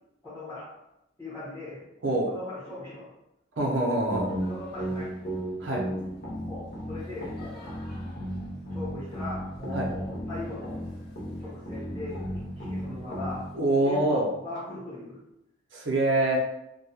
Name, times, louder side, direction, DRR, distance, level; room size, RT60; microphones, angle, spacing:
voice 1, 0.2-0.7 1.2-1.8 2.2-3.0 4.5-5.1 6.4-7.8 8.7-10.8 11.4-13.4 13.8-15.2, left 2 dB, 10° left, -10 dB, 0.9 m, -39 dB
voice 2, 3.6-4.3 5.6-5.8 9.7-9.9 13.5-14.3 15.7-16.4, right 2 dB, 80° right, -1 dB, 0.6 m, -25 dB
sound 1, 4.1-13.6, equal, 55° left, 0.5 m, -35 dB
2.2 x 2.1 x 2.8 m, 0.86 s
head